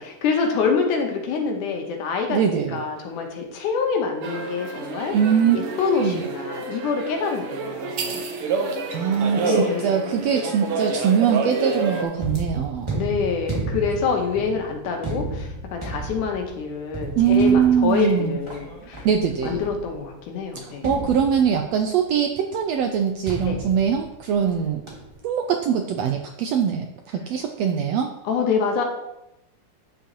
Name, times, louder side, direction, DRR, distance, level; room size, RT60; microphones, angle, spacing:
voice 1, 0.0-5.2 5.5-8.2 9.4-10.1 12.9-19.0 19.4-20.9 23.4-23.6 28.2-28.8, left 5 dB, 80° left, 3 dB, 2.6 m, -26 dB
voice 2, 2.3-2.9 5.1-5.6 6.0-6.2 8.9-13.0 17.1-18.4 19.0-19.6 20.6-24.8 25.2-28.1, right 7 dB, 80° right, 4 dB, 1.5 m, -22 dB
sound 1, 4.2-12.0, right 4 dB, 65° right, 1.5 m, -28 dB
sound 2, 12.2-20.1 20.8-21.8 23.3-24.5 24.9-25.2, right 2 dB, 10° right, 1.5 m, -33 dB
10.0 x 6.9 x 3.0 m, 0.89 s
omnidirectional pair, 3.6 m